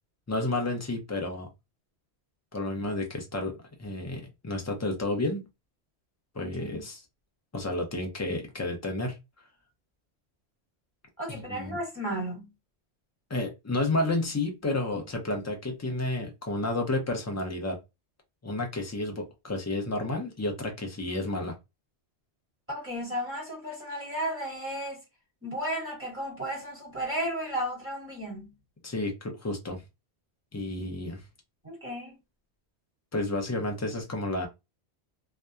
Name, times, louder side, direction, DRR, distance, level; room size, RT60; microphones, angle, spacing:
voice 1, 0.3-1.5 2.5-5.5 6.3-7.0 7.5-9.2 11.3-11.8 13.3-17.8 18.4-21.5 28.8-29.8 30.5-31.2 33.1-34.5, left 2 dB, 20° left, 0.4 m, -31 dB
voice 2, 6.4-6.8 11.2-12.5 22.7-25.0 25.4-28.5 31.6-32.1, equal, 10° right, 1.4 m, -34 dB
2.7 x 2.2 x 2.2 m
omnidirectional pair, 1.1 m